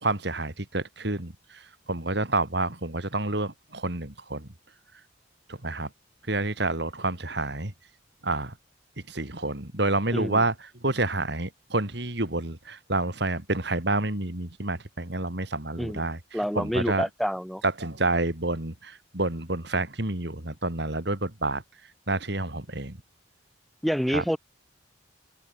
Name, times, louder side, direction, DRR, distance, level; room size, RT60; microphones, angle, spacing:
voice 1, 0.0-4.5 5.5-5.9 6.3-7.7 8.2-8.5 9.1-16.2 16.5-17.0 17.6-21.6 22.1-23.0 24.1-24.2, right 2 dB, 60° right, 3.0 m, -29 dB
voice 2, 10.1-10.4 15.8-16.0 16.3-17.6 23.8-24.4, equal, ahead, 3.4 m, -27 dB
head